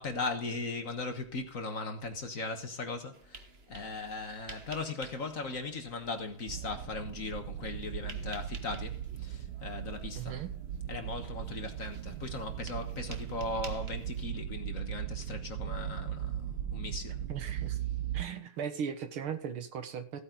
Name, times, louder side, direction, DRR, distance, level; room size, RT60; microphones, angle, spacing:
voice 1, 0.0-10.4 10.9-17.2, left 3 dB, 45° left, 1.5 m, -38 dB
sound 1, 3.1-14.3, right 3 dB, 35° right, 1.3 m, -52 dB
sound 2, 6.5-18.2, right 10 dB, 65° right, 1.2 m, -38 dB
voice 2, 10.2-10.5 17.3-17.8 18.1-20.2, right 7 dB, 85° right, 2.3 m, -38 dB
15.5 x 8.9 x 3.8 m
omnidirectional pair, 2.3 m